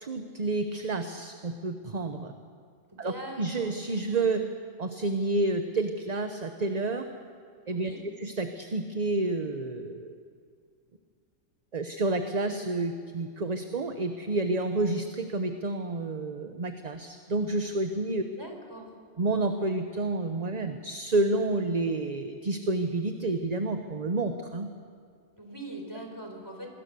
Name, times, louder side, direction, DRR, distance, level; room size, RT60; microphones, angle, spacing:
voice 1, 0.0-2.3 3.0-3.1 3.4-4.4 4.8-7.1 7.7-7.9 8.2-10.1 11.7-18.2 19.2-24.7, right 2 dB, 35° right, 7 dB, 1.0 m, -29 dB
voice 2, 2.9-4.3 7.6-8.0 18.2-18.9 25.4-26.7, right 1 dB, 20° right, 2 dB, 4.0 m, -42 dB
26.0 x 21.0 x 6.8 m, 2.2 s
omnidirectional pair, 1.3 m